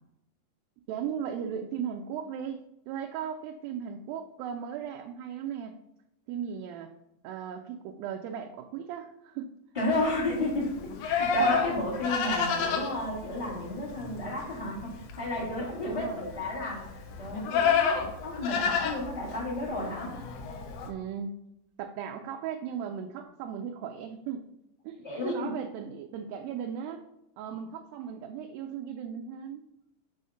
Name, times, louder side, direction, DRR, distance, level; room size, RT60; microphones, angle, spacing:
voice 1, 0.9-5.8 6.3-6.9 7.2-9.5 15.9-16.3 18.0-18.1 20.9-21.3 21.8-24.5 24.8-27.0 27.4-29.8, right 8 dB, 80° right, 4 dB, 2.3 m, -37 dB
voice 2, 9.7-20.1 25.0-25.5, left 2 dB, 20° left, -9 dB, 1.1 m, -32 dB
Livestock farm animals working animals, 9.9-20.9, left 5 dB, 75° left, 1.9 m, -31 dB
6.4 x 3.5 x 5.5 m, 0.84 s
omnidirectional pair, 4.2 m